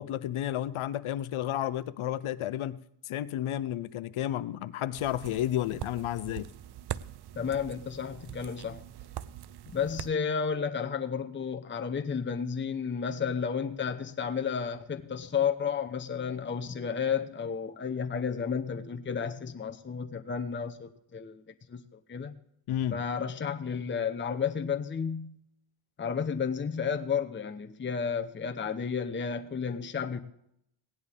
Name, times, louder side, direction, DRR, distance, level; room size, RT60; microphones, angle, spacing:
voice 1, 0.0-2.8 3.1-6.5 22.7-23.0, left 12 dB, 75° left, 16 dB, 0.7 m, -32 dB
sound 1, 4.9-10.1, right 11 dB, 55° right, 0.5 m, -42 dB
voice 2, 7.4-8.8 9.7-21.4 21.7-21.8 22.1-22.3 22.9-25.4 26.0-30.2, left 6 dB, 25° left, 7 dB, 0.7 m, -32 dB
17.0 x 10.5 x 3.5 m, 0.73 s
cardioid pair, 105°, 49 cm